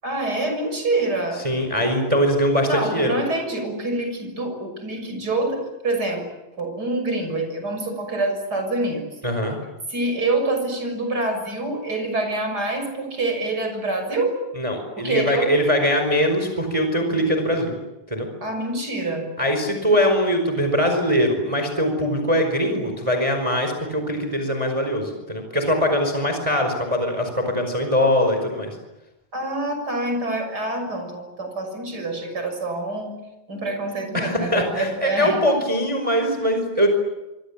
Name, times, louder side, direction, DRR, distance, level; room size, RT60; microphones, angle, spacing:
voice 1, 0.0-1.5 2.7-6.2 6.6-9.0 9.9-14.4 15.0-15.5 18.4-19.3 29.3-33.1 33.5-35.4, right 2 dB, 25° right, 5 dB, 7.0 m, -26 dB
voice 2, 1.4-3.2 9.2-9.6 14.6-17.7 18.1-18.3 19.4-28.8 34.1-36.9, equal, 10° right, 5 dB, 4.7 m, -22 dB
26.0 x 26.0 x 8.6 m, 0.98 s
omnidirectional pair, 4.1 m